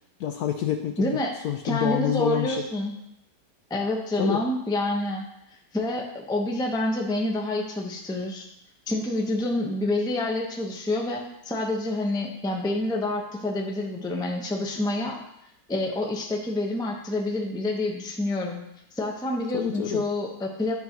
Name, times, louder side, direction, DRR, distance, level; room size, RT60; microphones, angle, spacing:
voice 1, 0.2-2.6 4.2-4.4 19.5-20.0, left 10 dB, 70° left, 5 dB, 0.9 m, -27 dB
voice 2, 1.0-1.3 1.6-2.9 3.7-5.2 5.7-8.5 8.9-15.2 15.7-18.6 18.9-20.7, left 1 dB, 5° left, 1 dB, 0.5 m, -27 dB
11.0 x 3.8 x 4.5 m, 0.79 s
omnidirectional pair, 1.9 m